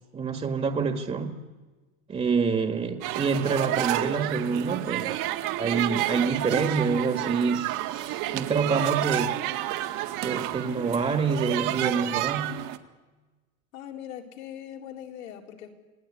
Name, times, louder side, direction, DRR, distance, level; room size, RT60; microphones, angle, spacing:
voice 1, 0.1-1.3 2.1-5.3 5.6-9.4 10.2-12.6, right 5 dB, 15° right, 5 dB, 1.7 m, -27 dB
sound 1, 3.0-12.8, right 15 dB, 55° right, 1.9 m, -30 dB
voice 2, 13.7-15.7, left 10 dB, 85° left, 1 dB, 4.3 m, -41 dB
27.5 x 18.0 x 9.9 m, 1.2 s
supercardioid pair, 125°, 39 cm